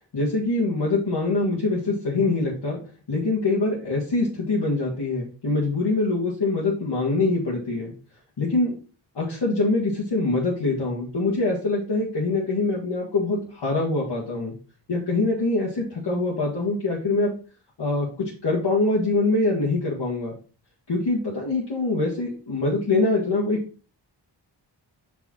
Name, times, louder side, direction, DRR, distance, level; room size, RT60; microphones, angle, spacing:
voice 1, 0.1-2.8 3.1-7.9 8.4-8.7 9.2-14.5 14.9-17.3 17.8-20.3 20.9-23.6, left 3 dB, 75° left, -5 dB, 2.0 m, -24 dB
5.7 x 5.0 x 4.4 m, 0.37 s
cardioid pair, 50°, 43 cm